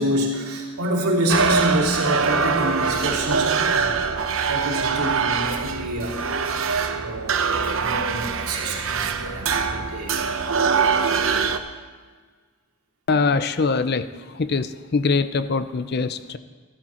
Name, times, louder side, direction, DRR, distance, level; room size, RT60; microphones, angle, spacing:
voice 1, 0.0-10.2, right 1 dB, 85° right, -3 dB, 2.9 m, -27 dB
sound 1, 1.3-11.6, right 5 dB, 65° right, 0.7 m, -23 dB
voice 2, 13.1-14.1 14.3-16.4, left 4 dB, 45° left, 12 dB, 0.5 m, -23 dB
14.0 x 13.5 x 4.4 m, 1.5 s
head